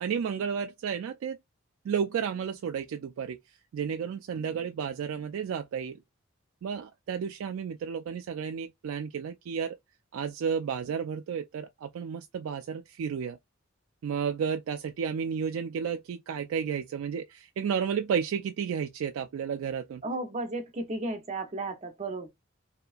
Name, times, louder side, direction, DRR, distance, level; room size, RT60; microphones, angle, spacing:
voice 1, 0.0-1.4 1.8-3.4 3.7-6.0 6.6-9.8 10.1-13.4 14.0-20.0, right 7 dB, 75° right, 0.3 m, -32 dB
voice 2, 20.0-22.3, right 2 dB, 35° right, 0.7 m, -34 dB
2.8 x 2.2 x 2.4 m
head